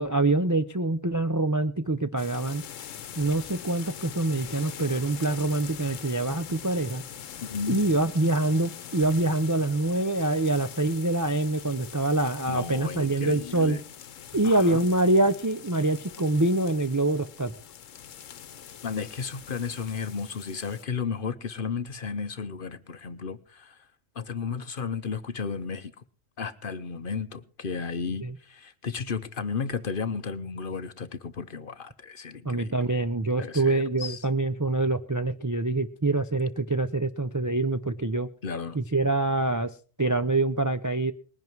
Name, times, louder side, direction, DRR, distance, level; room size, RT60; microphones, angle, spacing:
voice 1, 0.0-2.6 3.2-7.0 7.7-13.8 14.3-17.5 28.2-28.3 32.4-38.3 38.7-39.7 40.0-41.1, right 2 dB, 25° right, 0.4 m, -25 dB
sound 1, 2.2-20.8, left 9 dB, 75° left, 1.2 m, -43 dB
voice 2, 7.4-7.8 12.5-13.8 14.4-14.8 18.8-23.9 24.1-26.0 26.4-32.8 33.4-34.3 38.4-38.8, left 5 dB, 50° left, 0.9 m, -33 dB
20.0 x 11.0 x 4.6 m
omnidirectional pair, 1.3 m